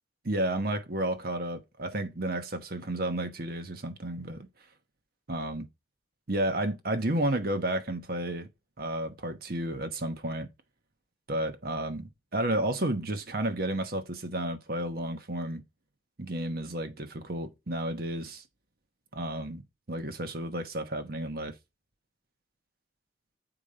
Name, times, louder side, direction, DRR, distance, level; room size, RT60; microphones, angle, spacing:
voice 1, 0.2-4.5 5.3-5.7 6.3-8.5 8.8-10.5 11.3-15.6 16.2-18.4 19.1-19.6 19.9-21.5, right 1 dB, 55° right, 1.1 m, -32 dB
7.2 x 5.0 x 4.0 m
head